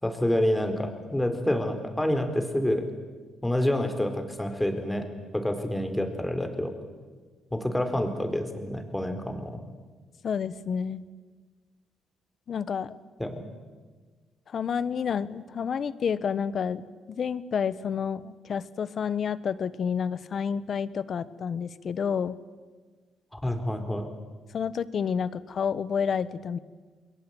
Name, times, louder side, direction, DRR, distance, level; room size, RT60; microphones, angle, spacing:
voice 1, 0.0-2.9 3.4-5.1 5.3-6.7 7.5-9.6 13.2-13.4 23.3-24.1, left 1 dB, 5° left, 6 dB, 4.4 m, -28 dB
voice 2, 10.2-11.0 12.5-12.9 14.5-16.8 17.1-22.4 24.5-26.6, left 7 dB, 55° left, 16 dB, 1.3 m, -29 dB
29.0 x 21.5 x 9.2 m, 1.4 s
cardioid pair, 90°, 0 cm